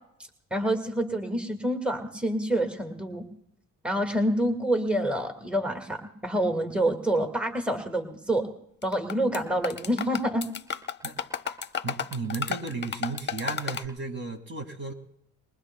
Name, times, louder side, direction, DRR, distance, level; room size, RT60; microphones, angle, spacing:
voice 1, 0.5-3.2 3.8-8.5 8.8-10.5, right 1 dB, 5° right, 5 dB, 1.7 m, -27 dB
sound 1, 8.8-9.4 9.6-13.9, left 7 dB, 35° left, 0.9 m, -32 dB
voice 2, 11.8-14.9, right 3 dB, 35° right, 4 dB, 2.0 m, -34 dB
22.5 x 21.0 x 2.2 m, 0.77 s
cardioid pair, 85°, 32 cm